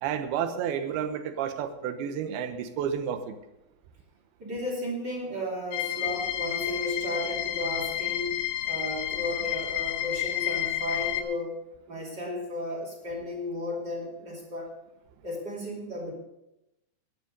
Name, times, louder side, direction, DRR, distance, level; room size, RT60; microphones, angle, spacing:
voice 1, 0.0-3.4, right 8 dB, 75° right, 8 dB, 2.7 m, -31 dB
voice 2, 4.4-8.4 8.6-11.5 11.9-14.7 15.2-16.1, left 1 dB, 30° right, -1 dB, 2.7 m, -34 dB
sound 1, 5.7-11.2, left 13 dB, 75° left, 2.8 m, -30 dB
14.0 x 10.5 x 5.2 m, 0.90 s
omnidirectional pair, 4.9 m